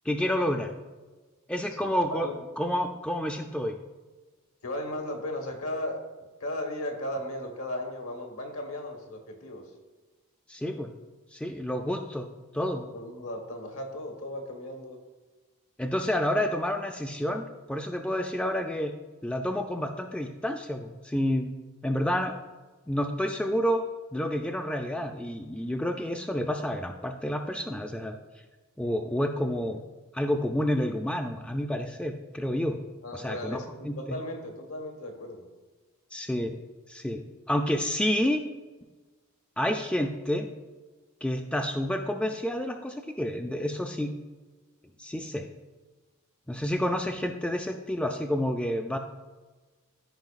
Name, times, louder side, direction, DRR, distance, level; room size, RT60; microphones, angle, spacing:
voice 1, 0.1-0.7 1.5-2.3 2.6-3.7 10.5-10.9 11.3-12.3 12.5-12.9 15.8-17.4 17.7-18.9 19.2-21.5 21.8-22.3 22.9-23.8 24.1-28.2 28.8-29.8 30.1-32.8 33.1-34.2 36.1-36.5 36.9-37.2 37.5-38.4 39.6-40.5 41.2-44.1 45.0-45.5 46.5-49.0, equal, 5° left, 4 dB, 0.3 m, -29 dB
voice 2, 1.8-2.4 4.6-6.0 6.4-9.6 12.9-15.0 33.0-35.5, left 1 dB, 75° left, 4 dB, 1.3 m, -36 dB
13.0 x 5.2 x 2.4 m, 1.3 s
head